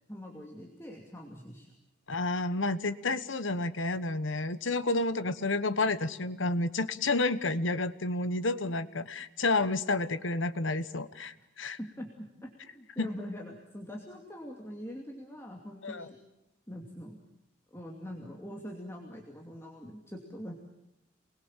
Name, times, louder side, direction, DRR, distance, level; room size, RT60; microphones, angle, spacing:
voice 1, 0.1-1.7 11.8-16.2 16.7-17.2 17.7-20.6, equal, 15° left, 0 dB, 2.6 m, -43 dB
voice 2, 2.1-11.8 13.0-13.1 15.8-16.1, left 2 dB, 80° left, 13 dB, 1.3 m, -30 dB
28.5 x 21.0 x 7.5 m, 0.90 s
head